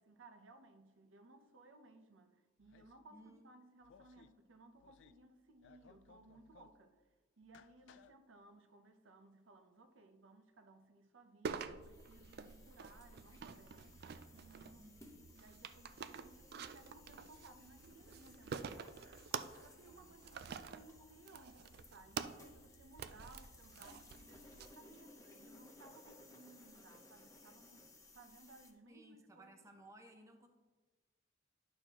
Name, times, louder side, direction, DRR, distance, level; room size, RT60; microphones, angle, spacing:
voice 1, 0.0-7.0 7.4-14.0 14.3-18.9 19.6-29.7, right 2 dB, 90° right, 0.7 m, -61 dB
sound 1, 2.6-3.0 3.8-4.3 4.7-5.2 5.5-6.8 7.4-8.1, left 7 dB, 65° left, 0.3 m, -64 dB
voice 2, 3.1-3.4 14.7-15.1 19.9-20.3 28.9-30.5, right 1 dB, 15° right, 0.6 m, -60 dB
sound 2, 11.4-24.7, right 6 dB, 55° right, 0.4 m, -48 dB
sound 3, 11.8-28.7, left 2 dB, 15° left, 0.9 m, -62 dB
10.5 x 6.3 x 2.9 m
head